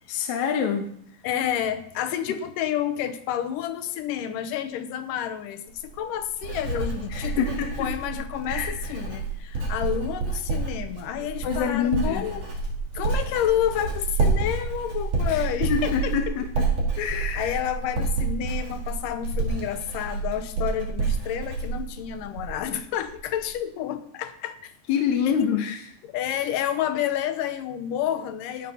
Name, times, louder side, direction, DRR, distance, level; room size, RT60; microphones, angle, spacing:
voice 1, 0.1-0.9 7.1-7.7 8.5-8.7 11.4-12.2 15.7-16.6 17.0-17.5 24.9-25.8, left 7 dB, 70° left, 4 dB, 2.3 m, -26 dB
voice 2, 1.2-12.5 12.9-16.3 16.9-24.7 25.3-25.5 26.0-28.7, left 10 dB, 85° left, 10 dB, 2.5 m, -30 dB
Writing, 5.7-22.7 23.0-23.5, right 4 dB, 65° right, 3.8 m, -29 dB
17.5 x 6.1 x 5.6 m, 0.65 s
omnidirectional pair, 3.7 m